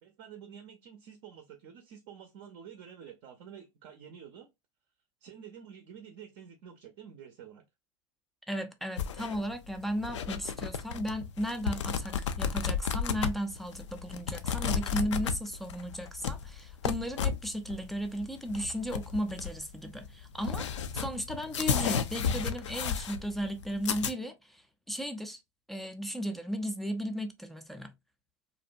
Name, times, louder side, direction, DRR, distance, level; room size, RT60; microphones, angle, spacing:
voice 1, 0.0-4.5 5.2-7.6, right 8 dB, 50° right, 0.5 m, -49 dB
voice 2, 8.5-20.7 20.9-25.4 25.7-27.9, equal, ahead, 0.4 m, -35 dB
sound 1, 9.0-24.1, left 7 dB, 75° left, 0.4 m, -33 dB
2.5 x 2.1 x 2.5 m
hypercardioid pair, 100°, 15 cm